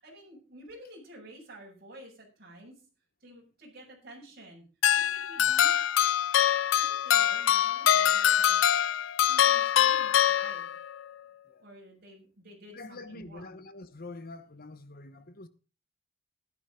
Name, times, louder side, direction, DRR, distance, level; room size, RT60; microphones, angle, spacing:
voice 1, 0.0-2.7 3.2-4.6 4.9-5.9 6.7-8.6 9.2-10.6 11.6-13.6, right 1 dB, 55° right, 6.5 m, -50 dB
sound 1, 4.8-11.0, left 10 dB, 80° left, 0.5 m, -24 dB
voice 2, 12.7-15.5, left 2 dB, 50° left, 1.3 m, -45 dB
14.0 x 11.5 x 3.9 m
head